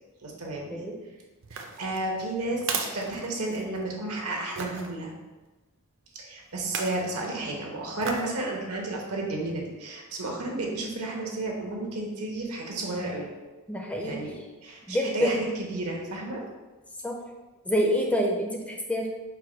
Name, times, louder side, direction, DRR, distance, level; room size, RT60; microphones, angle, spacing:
voice 1, 0.2-0.9 1.5-5.1 6.1-13.3 14.0-14.3 14.6-16.4, right 2 dB, 80° right, -1 dB, 1.0 m, -32 dB
sound 1, 1.4-3.9 4.6-4.9 6.6-7.1 8.0-8.4 8.8-8.9, right 5 dB, 60° right, 0.5 m, -35 dB
voice 2, 13.7-14.2 14.9-15.3 17.0-17.2 17.7-19.1, equal, 5° left, 0 dB, 0.4 m, -26 dB
4.6 x 2.2 x 4.8 m, 1.2 s
head